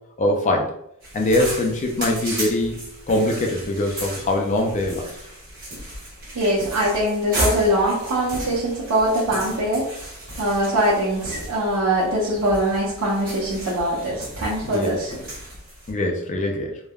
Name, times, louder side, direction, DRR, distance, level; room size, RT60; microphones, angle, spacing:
voice 1, 0.2-0.7 1.1-2.7 3.1-5.1 14.6-15.0 15.9-16.8, left 1 dB, 30° left, 2 dB, 0.4 m, -22 dB
sound 1, 1.0-15.9, right 1 dB, 40° right, 1.4 m, -35 dB
voice 2, 6.3-9.9 10.4-15.1, right 1 dB, 90° right, -7 dB, 0.7 m, -22 dB
3.3 x 2.1 x 2.3 m, 0.75 s
head